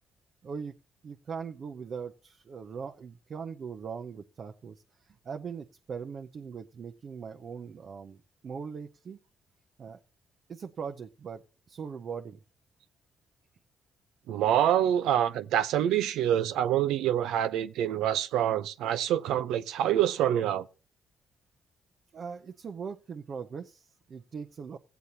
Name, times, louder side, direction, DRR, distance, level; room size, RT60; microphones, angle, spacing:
voice 1, 0.4-0.7 1.0-8.2 8.4-9.2 9.8-10.0 10.5-12.4 22.1-24.8, right 6 dB, 50° right, 0.7 m, -40 dB
voice 2, 14.3-20.7, right 11 dB, 90° right, 0.6 m, -26 dB
16.5 x 8.1 x 2.8 m
cardioid pair, 90°, 0 cm